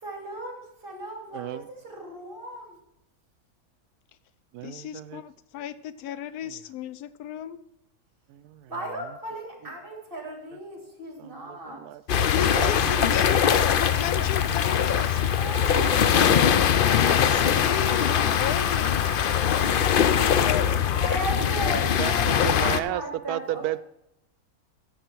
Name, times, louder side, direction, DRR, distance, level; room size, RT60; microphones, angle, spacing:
voice 1, 0.0-2.8 8.7-11.8 15.2-17.0 21.0-23.8, right 1 dB, 35° right, 3.2 m, -36 dB
voice 2, 1.3-1.7 4.5-5.2 6.4-6.6 8.3-9.2 11.2-12.3 12.5-13.1 22.0-23.8, right 13 dB, 85° right, 1.1 m, -34 dB
voice 3, 4.6-7.6 12.3-15.2 17.1-21.1 21.6-21.8, left 10 dB, 90° left, 1.1 m, -34 dB
sound 1, 12.1-22.8, left 8 dB, 75° left, 0.5 m, -22 dB
Cricket, 12.7-20.4, right 2 dB, 15° right, 1.1 m, -42 dB
15.0 x 7.4 x 4.5 m
omnidirectional pair, 1.6 m